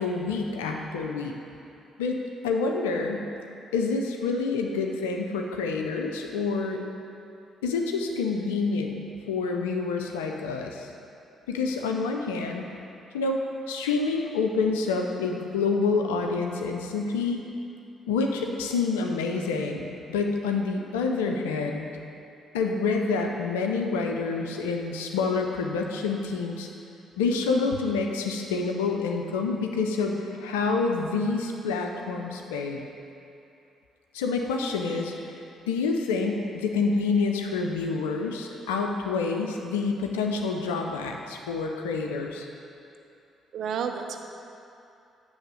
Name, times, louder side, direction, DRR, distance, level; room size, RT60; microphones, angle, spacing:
voice 1, 0.0-1.3 2.0-2.2 2.4-3.3 3.7-6.8 7.6-9.0 9.3-10.9 11.5-12.7 13.1-13.4 13.7-17.4 18.1-21.9 22.5-26.7 27.2-32.8 34.1-35.1 35.7-42.5, left 4 dB, 90° left, 2 dB, 0.5 m, -27 dB
voice 2, 43.5-44.2, right 7 dB, 65° right, 5 dB, 0.5 m, -32 dB
8.0 x 3.4 x 6.3 m, 2.7 s
hypercardioid pair, 50°, 0 cm